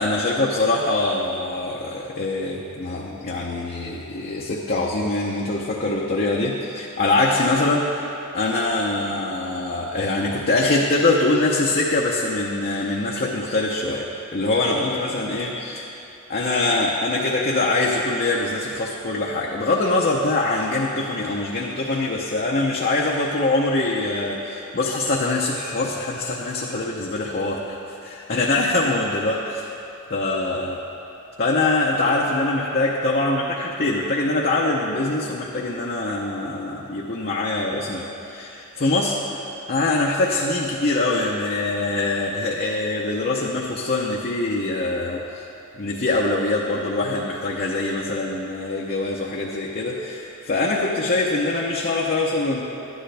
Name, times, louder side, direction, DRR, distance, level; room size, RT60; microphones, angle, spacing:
voice 1, 0.0-8.1 8.3-16.0 16.3-27.8 28.0-29.7 30.1-30.8 31.4-45.4 45.7-52.6, left 2 dB, 45° left, -3 dB, 0.7 m, -23 dB
12.0 x 10.0 x 3.4 m, 2.8 s
head